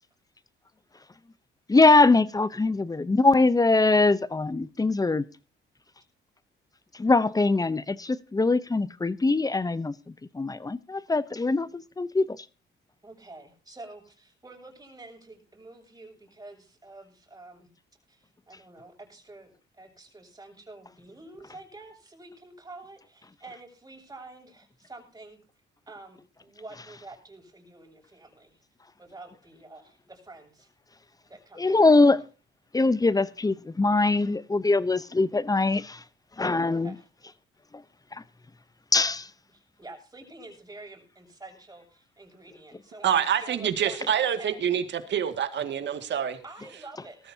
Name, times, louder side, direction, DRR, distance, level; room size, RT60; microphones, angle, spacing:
voice 1, 1.7-5.2 6.9-12.5 31.6-32.2 32.7-36.0 36.4-36.9 38.1-38.2 38.9-39.3, left 3 dB, 20° left, 0.8 m, -22 dB
voice 2, 13.0-17.7 18.1-25.4 25.9-28.5 29.0-30.7 31.3-32.1 36.6-37.0 39.5-44.1 44.3-44.7 46.4-47.2, right 2 dB, 20° right, 7.3 m, -48 dB
voice 3, 43.0-46.4, right 9 dB, 65° right, 2.2 m, -26 dB
20.0 x 13.5 x 2.8 m
cardioid pair, 90°, 20 cm